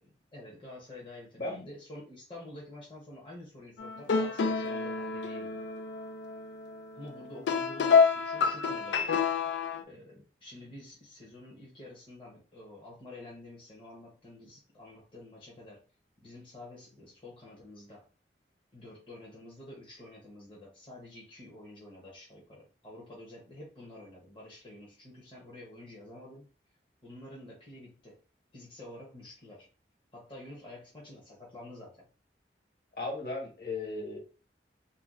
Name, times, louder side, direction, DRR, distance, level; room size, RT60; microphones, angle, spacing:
voice 1, 0.3-5.6 6.9-9.2 9.8-15.9 16.2-18.1 18.7-26.4 27.0-28.2 28.5-29.7 30.1-32.1, left 1 dB, 30° left, -5 dB, 0.8 m, -49 dB
voice 2, 1.4-1.7 33.0-34.2, left 2 dB, 55° left, -1 dB, 1.4 m, -36 dB
sound 1, 3.8-9.8, left 5 dB, 85° left, 0.4 m, -28 dB
2.7 x 2.3 x 3.5 m, 0.36 s
head